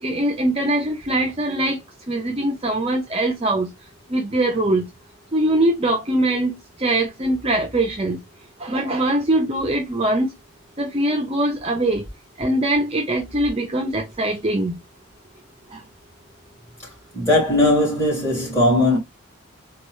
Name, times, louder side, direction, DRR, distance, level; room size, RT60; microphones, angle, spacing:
voice 1, 0.0-1.8 2.1-3.7 4.1-4.9 5.3-8.2 8.6-10.3 10.8-12.0 12.4-14.8 15.7-15.8, right 1 dB, 25° right, 0.5 m, -22 dB
voice 2, 17.1-19.0, left 1 dB, 15° left, 2.4 m, -18 dB
4.2 x 2.3 x 3.0 m
head